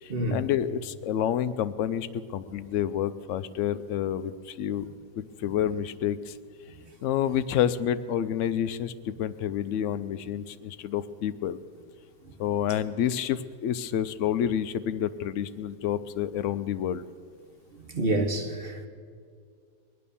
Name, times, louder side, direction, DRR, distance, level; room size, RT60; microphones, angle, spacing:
voice 1, 0.0-4.9 5.1-6.4 7.0-11.6 12.4-17.0, left 10 dB, 80° left, 0.6 m, -29 dB
voice 2, 17.9-18.9, right 2 dB, 40° right, 1.2 m, -27 dB
21.5 x 9.4 x 6.9 m
omnidirectional pair, 1.8 m